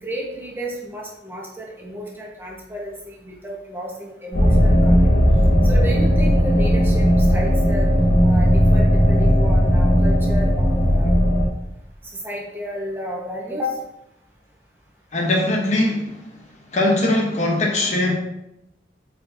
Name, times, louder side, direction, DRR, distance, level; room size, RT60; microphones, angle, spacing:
voice 1, 0.0-5.2 5.6-7.9 8.2-11.2 12.0-13.8, equal, 10° right, -3 dB, 1.2 m, -32 dB
sound 1, 4.3-11.5, equal, 90° left, 1.6 m, -16 dB
voice 2, 15.1-16.1 16.7-18.1, left 1 dB, 40° left, 0 dB, 0.9 m, -20 dB
8.2 x 4.5 x 2.7 m, 0.86 s
head